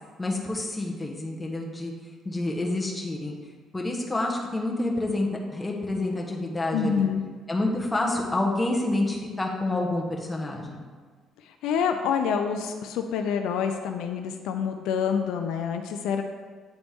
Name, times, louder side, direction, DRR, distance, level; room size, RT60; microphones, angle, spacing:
voice 1, 0.2-1.9 2.2-3.3 3.7-7.1 7.5-10.8, left 2 dB, 15° left, -1 dB, 1.1 m, -28 dB
voice 2, 6.7-7.2 11.5-16.2, left 7 dB, 85° left, 5 dB, 0.4 m, -27 dB
9.0 x 4.0 x 3.5 m, 1.5 s
cardioid pair, 100°, 0 cm